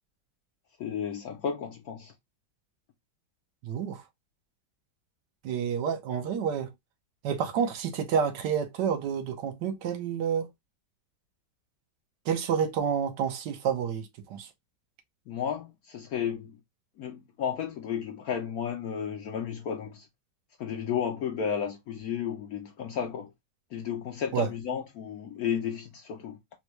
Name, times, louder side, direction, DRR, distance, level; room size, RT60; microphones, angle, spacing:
voice 1, 0.8-2.1 15.3-16.6 17.0-20.1 20.6-23.3 23.7-26.4, left 8 dB, 70° left, 0.9 m, -33 dB
voice 2, 3.6-4.0 5.4-6.7 7.2-10.5 12.3-14.5 24.3-24.5, right 7 dB, 75° right, 1.4 m, -29 dB
4.3 x 2.2 x 3.0 m
omnidirectional pair, 1.9 m